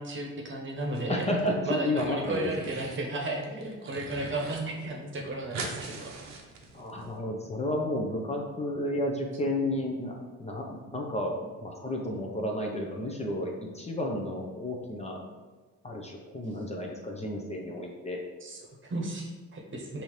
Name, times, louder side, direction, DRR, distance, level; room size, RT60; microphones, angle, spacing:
voice 1, 0.0-1.3 1.6-6.4 18.4-20.0, right 2 dB, 40° right, 0 dB, 1.0 m, -34 dB
sound 1, 0.8-1.5 1.8-3.0 3.4-4.6 4.9-5.0 5.2-7.1, right 3 dB, 65° right, 0.8 m, -41 dB
voice 2, 1.1-1.5 1.8-2.7 6.7-15.2 15.8-18.2, left 1 dB, 20° left, 0 dB, 0.6 m, -32 dB
5.5 x 2.7 x 3.1 m, 1.3 s
cardioid pair, 90°, 30 cm